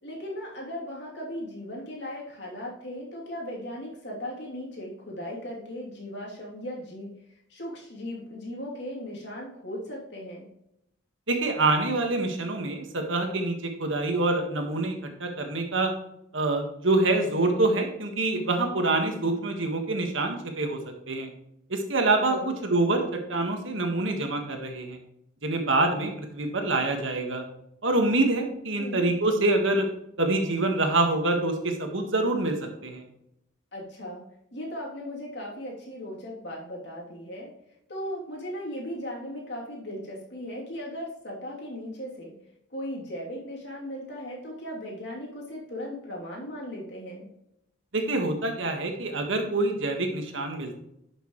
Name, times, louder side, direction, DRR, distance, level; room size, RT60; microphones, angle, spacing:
voice 1, 0.0-10.5 22.3-22.6 28.8-29.1 33.7-34.2 34.5-37.5 37.9-42.3 42.7-47.3, equal, 60° left, -3 dB, 3.1 m, -37 dB
voice 2, 11.3-15.9 16.3-20.8 21.1-21.3 21.7-23.0 23.3-25.0 25.4-27.4 27.8-29.9 30.2-32.6 32.8-33.0 47.9-50.7, right 2 dB, 85° right, 4 dB, 1.7 m, -26 dB
11.0 x 6.5 x 3.2 m, 0.79 s
head